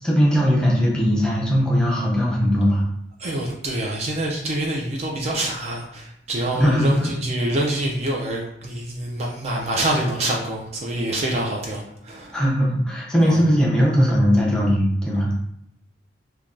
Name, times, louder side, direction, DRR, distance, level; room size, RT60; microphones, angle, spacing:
voice 1, 0.0-2.8 6.5-7.1 12.3-15.4, equal, 5° left, -4 dB, 0.6 m, -19 dB
voice 2, 3.2-12.4 13.2-13.5, right 1 dB, 35° right, -1 dB, 0.4 m, -26 dB
3.2 x 2.2 x 2.4 m, 0.76 s
head